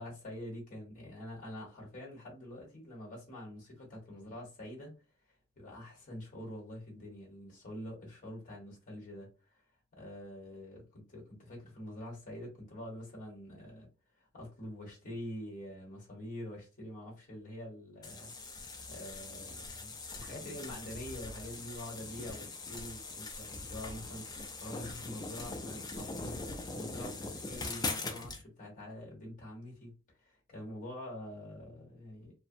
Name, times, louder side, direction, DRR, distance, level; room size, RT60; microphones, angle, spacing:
voice 1, 0.0-4.9 5.5-9.6 9.9-13.9 14.2-18.6 18.9-29.9 30.2-32.3, left 1 dB, 35° left, 1.0 m, -46 dB
sound 1, 18.0-28.4, left 3 dB, 20° left, 0.3 m, -41 dB
2.6 x 2.0 x 2.6 m
head